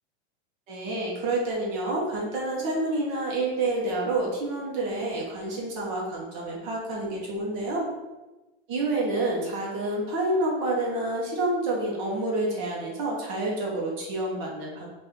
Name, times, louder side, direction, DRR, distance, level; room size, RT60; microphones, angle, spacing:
voice 1, 0.7-7.9 8.7-14.9, right 2 dB, 50° right, -3 dB, 1.0 m, -28 dB
4.2 x 2.6 x 3.5 m, 1.1 s
supercardioid pair, 140°, 34 cm